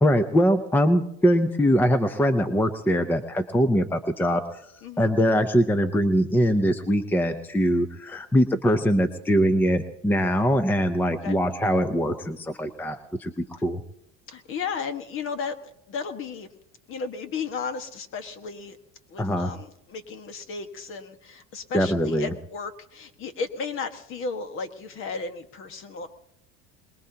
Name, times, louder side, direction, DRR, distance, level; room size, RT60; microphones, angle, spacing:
voice 1, 0.0-4.6 5.0-13.8 19.2-19.5 21.7-22.3, equal, 5° left, 9 dB, 0.7 m, -22 dB
voice 2, 4.8-5.1 11.2-11.4 13.5-13.6 14.3-15.6 15.9-16.5 16.9-18.8 19.1-26.1, left 5 dB, 45° left, 8 dB, 1.6 m, -34 dB
22.5 x 21.0 x 2.9 m, 0.76 s
cardioid pair, 140°, 30 cm